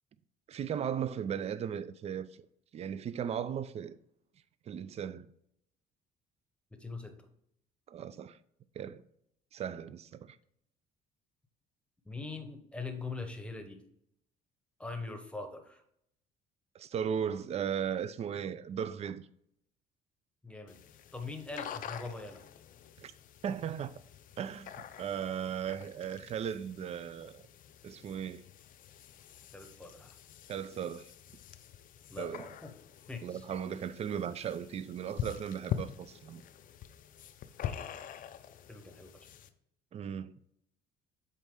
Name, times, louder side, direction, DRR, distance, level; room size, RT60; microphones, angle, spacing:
voice 1, 0.5-2.3 2.7-4.0 4.7-5.3 7.9-8.4 8.8-9.0 9.5-10.4 16.7-19.2 23.0-23.1 23.4-23.9 24.4-27.4 27.8-28.4 30.5-31.1 32.2-32.5 33.2-36.4 39.9-40.3, right 8 dB, 40° right, 0.4 m, -37 dB
voice 2, 6.7-7.3 12.0-13.8 14.8-15.8 20.4-20.8 21.1-22.4 29.5-30.2 32.1-32.7 33.1-33.5 37.6-37.9 38.7-39.3, left 3 dB, 5° left, 0.9 m, -42 dB
sound 1, 20.7-39.5, left 9 dB, 55° left, 0.5 m, -45 dB
7.4 x 4.2 x 3.7 m
cardioid pair, 110°, 17 cm